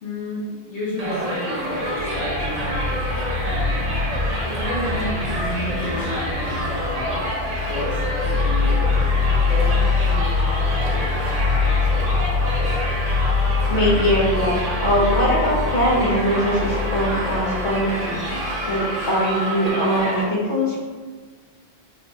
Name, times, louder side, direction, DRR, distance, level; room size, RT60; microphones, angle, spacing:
voice 1, 0.0-3.9 4.6-8.8 9.4-12.0 12.3-12.8, left 1 dB, 85° left, -8 dB, 0.9 m, -32 dB
Crowd, 1.0-20.2, equal, 45° right, 0.6 m, -28 dB
sound 1, 1.7-19.0, left 4 dB, 90° right, 1.0 m, -24 dB
voice 2, 13.7-18.2 18.7-20.9, equal, 50° left, -4 dB, 0.7 m, -21 dB
3.4 x 2.3 x 2.6 m, 1.5 s
omnidirectional pair, 1.1 m